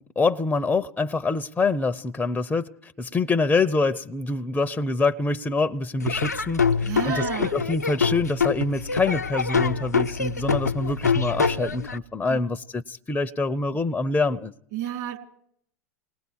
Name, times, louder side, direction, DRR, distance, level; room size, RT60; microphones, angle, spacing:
voice 1, 0.2-14.5, left 3 dB, 15° left, 0.7 m, -25 dB
Laughter / Drum, 6.0-12.0, left 5 dB, 90° left, 0.7 m, -25 dB
voice 2, 6.8-7.6 12.3-12.5 14.7-15.2, right 12 dB, 50° right, 4.4 m, -31 dB
28.0 x 19.5 x 4.7 m
figure-of-eight pair, 85°, 9 cm